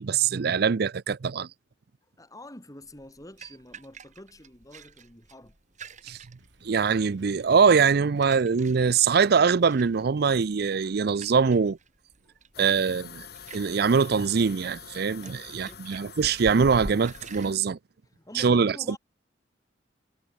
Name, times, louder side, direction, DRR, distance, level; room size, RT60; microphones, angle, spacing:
voice 1, 0.0-1.5 6.1-6.2 6.6-11.8 12.6-13.3 13.5-17.8 18.3-19.0, right 5 dB, 60° right, 0.5 m, -23 dB
voice 2, 2.2-5.6 12.2-13.1 15.2-15.8 18.0-19.0, left 1 dB, 20° left, 6.0 m, -48 dB
sound 1, 2.8-17.5, right 2 dB, 40° right, 5.6 m, -47 dB
Drum kit, 6.4-11.7, right 3 dB, 75° right, 6.7 m, -59 dB
sound 2, 12.5-17.6, left 7 dB, 60° left, 4.8 m, -46 dB
head